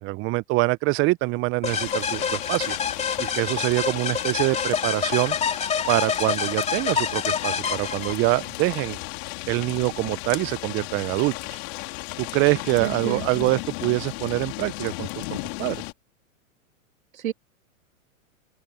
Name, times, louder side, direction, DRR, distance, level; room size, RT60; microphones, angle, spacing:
voice 1, 0.0-2.8 3.2-5.4 5.9-9.0 9.5-11.6 12.2-15.8, right 23 dB, 30° right, 0.7 m, -25 dB
sound 1, 1.6-8.5, left 6 dB, 15° left, 3.5 m, -27 dB
sound 2, 1.7-15.9, left 28 dB, 50° left, 3.8 m, -35 dB
voice 2, 12.8-13.5 17.1-17.3, right 11 dB, 85° right, 2.3 m, -31 dB
open air
hypercardioid pair, 120°, 41 cm